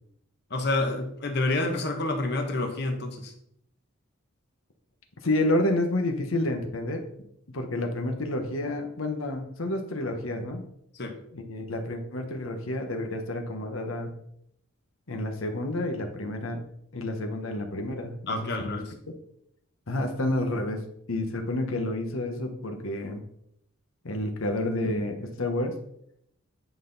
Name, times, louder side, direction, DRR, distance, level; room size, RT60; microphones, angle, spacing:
voice 1, 0.5-3.3 10.9-11.2 18.3-18.9, left 2 dB, 50° left, 4 dB, 1.1 m, -28 dB
voice 2, 5.2-7.0 7.5-10.7 11.3-14.2 15.1-16.6 16.9-18.8 19.9-20.8 21.1-23.2 24.0-25.7, left 1 dB, 85° left, 5 dB, 1.1 m, -29 dB
9.3 x 5.7 x 4.0 m, 0.73 s
head